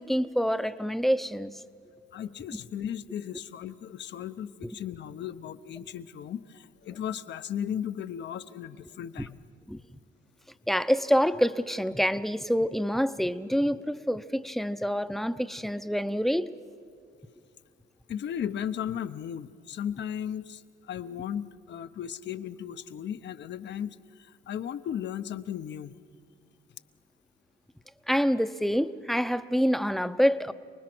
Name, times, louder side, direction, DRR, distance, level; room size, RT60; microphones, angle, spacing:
voice 1, 0.0-1.5 4.6-4.7 9.7-9.8 10.7-16.5 28.1-30.5, equal, ahead, 11 dB, 0.7 m, -26 dB
voice 2, 2.1-9.4 18.1-26.0, left 9 dB, 65° left, 11 dB, 0.8 m, -36 dB
29.0 x 20.0 x 6.1 m, 2.3 s
cardioid pair, 90°, 20 cm